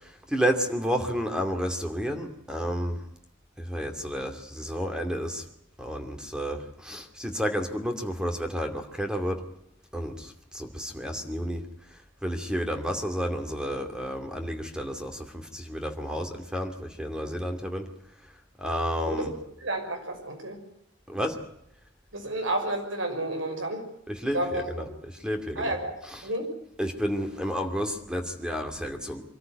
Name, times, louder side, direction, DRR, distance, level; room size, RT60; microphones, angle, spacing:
voice 1, 0.3-3.0 3.6-5.4 5.8-9.4 9.9-10.3 10.5-11.6 12.2-15.3 15.5-17.8 18.6-19.3 21.1-21.3 24.2-24.4 25.2-25.7 26.8-29.2, equal, 5° right, 5 dB, 2.5 m, -30 dB
voice 2, 19.6-20.6 22.1-23.8 24.3-24.9 25.5-25.9 26.2-26.5, right 1 dB, 85° right, 4 dB, 6.1 m, -31 dB
24.0 x 14.0 x 9.3 m, 0.79 s
head